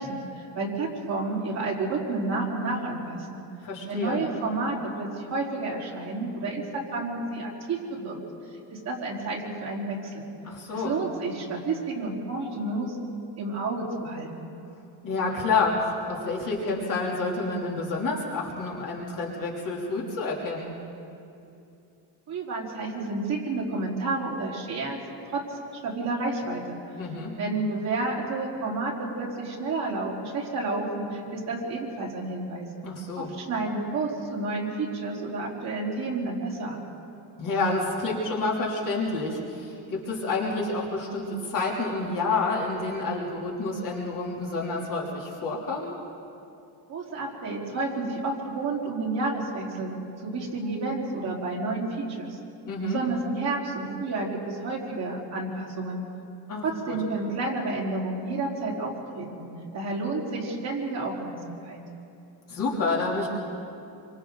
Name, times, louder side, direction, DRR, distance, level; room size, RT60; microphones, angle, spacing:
voice 1, 0.0-3.4 3.9-8.2 8.7-10.3 10.7-13.0 13.4-14.5 22.3-25.0 25.3-25.6 25.8-26.8 27.4-32.7 33.2-36.8 46.9-52.4 52.8-56.0 56.6-59.5 59.7-61.8, right 3 dB, 40° right, -4 dB, 4.1 m, -30 dB
voice 2, 3.6-4.2 10.4-11.0 15.0-20.7 27.0-27.3 32.8-33.3 37.4-46.0 52.7-53.0 56.5-56.9 62.5-63.3, left 3 dB, 50° left, -4 dB, 3.2 m, -29 dB
27.0 x 25.0 x 4.0 m, 2.7 s
cardioid pair, 170°, 42 cm